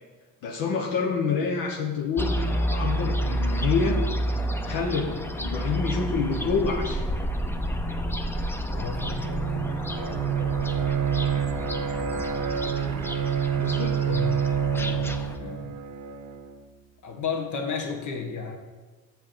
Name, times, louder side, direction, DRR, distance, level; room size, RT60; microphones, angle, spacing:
voice 1, 0.4-4.0 4.6-7.1 13.6-14.0, left 5 dB, 80° left, 0 dB, 1.1 m, -27 dB
sound 1, 2.2-15.4, equal, 5° left, 0.4 m, -30 dB
voice 2, 8.7-9.3 14.1-14.4 14.8-15.7 17.0-18.6, left 6 dB, 60° left, 2 dB, 1.5 m, -33 dB
Bowed string instrument, 8.8-16.6, right 8 dB, 55° right, 0.7 m, -28 dB
7.4 x 4.6 x 6.8 m, 1.3 s
cardioid pair, 125°, 34 cm